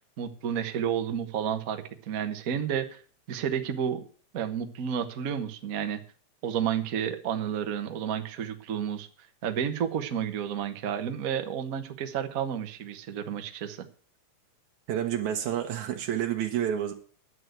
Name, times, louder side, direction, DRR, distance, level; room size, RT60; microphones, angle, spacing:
voice 1, 0.2-3.0 3.3-4.0 4.3-6.0 6.4-9.1 9.4-13.8, right 8 dB, 55° right, 0.9 m, -31 dB
voice 2, 14.9-16.9, right 10 dB, 80° right, 2.6 m, -29 dB
10.5 x 8.0 x 7.9 m
omnidirectional pair, 3.3 m